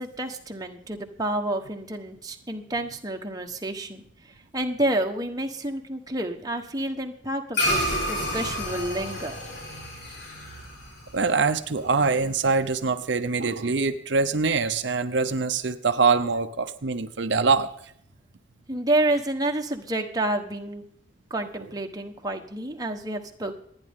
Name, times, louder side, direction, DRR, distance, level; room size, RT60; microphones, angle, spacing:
voice 1, 0.0-9.4 18.7-20.8 21.3-23.6, right 1 dB, 20° right, 3 dB, 1.2 m, -29 dB
sound 1, 7.5-12.2, left 1 dB, 55° left, 4.7 m, -30 dB
voice 2, 11.1-17.7, right 4 dB, 65° right, 8 dB, 0.7 m, -24 dB
27.5 x 9.8 x 3.7 m, 0.68 s
head